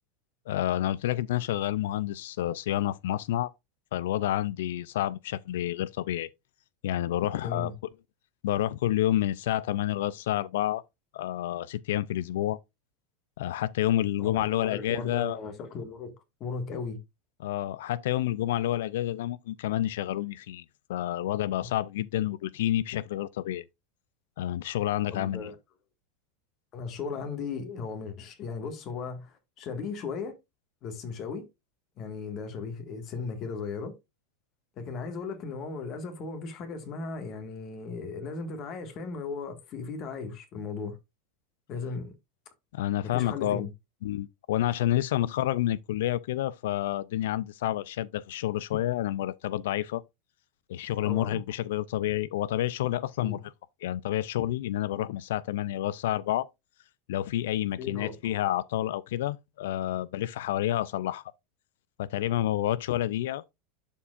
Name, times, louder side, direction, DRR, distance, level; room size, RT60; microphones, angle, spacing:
voice 1, 0.5-3.5 3.9-6.3 6.8-7.7 8.4-10.8 11.1-12.6 13.4-15.4 17.4-20.6 20.9-23.7 24.4-25.5 42.7-43.6 44.0-50.0 50.7-53.4 53.8-56.5 57.1-61.2 62.0-63.4, left 13 dB, 80° left, 0.3 m, -29 dB
voice 2, 7.4-7.7 14.2-16.1 16.4-17.0 25.1-25.5 26.7-30.4 30.8-31.5 32.0-34.0 34.8-41.0 41.7-42.1 43.0-43.7 51.0-51.4 53.2-53.4 57.8-58.2, left 4 dB, 45° left, 1.7 m, -36 dB
11.5 x 4.3 x 2.4 m
supercardioid pair, 120°, 0 cm